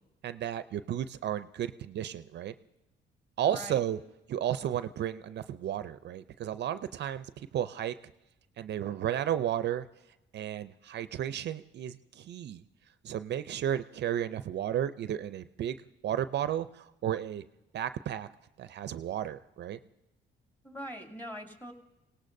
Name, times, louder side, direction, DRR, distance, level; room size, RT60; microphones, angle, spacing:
voice 1, 0.2-2.5 3.4-4.0 4.3-7.9 8.6-9.9 10.3-12.6 13.0-15.8 16.0-17.4 17.7-18.3 18.6-19.8, right 10 dB, 60° right, 12 dB, 0.5 m, -33 dB
voice 2, 3.5-3.8 20.6-21.7, equal, 10° left, 2 dB, 2.5 m, -42 dB
25.5 x 18.0 x 2.6 m, 0.97 s
cardioid pair, 90°, 20 cm